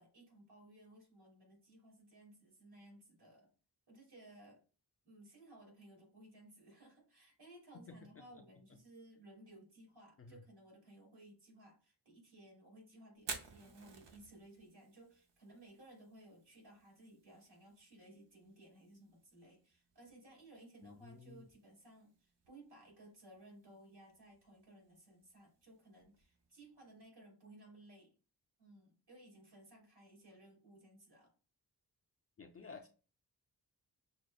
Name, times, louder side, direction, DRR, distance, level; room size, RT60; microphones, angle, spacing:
voice 1, 0.0-3.5 3.9-4.6 5.0-28.1 28.6-31.3, right 1 dB, 70° right, -1 dB, 2.0 m, -59 dB
Fire, 13.1-27.0, right 5 dB, 85° right, 0.7 m, -56 dB
voice 2, 20.8-21.4 32.4-32.9, left 4 dB, 35° left, 4 dB, 0.4 m, -53 dB
6.2 x 2.1 x 2.2 m, 0.35 s
wide cardioid pair, 90°, 41 cm